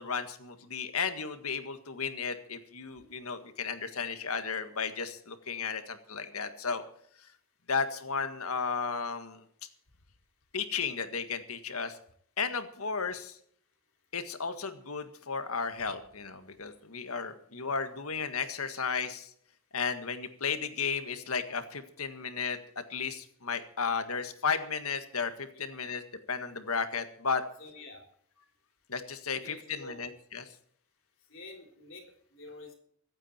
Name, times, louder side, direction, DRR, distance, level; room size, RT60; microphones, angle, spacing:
voice 1, 0.0-6.8 7.7-9.4 10.5-12.0 12.4-13.4 14.1-19.3 19.7-26.0 26.3-27.4 28.9-30.5, left 5 dB, 90° left, 9 dB, 1.8 m, -34 dB
voice 2, 27.6-28.0 29.3-30.1 31.3-32.7, left 2 dB, 60° left, 3 dB, 3.7 m, -48 dB
24.0 x 8.9 x 4.4 m, 0.64 s
head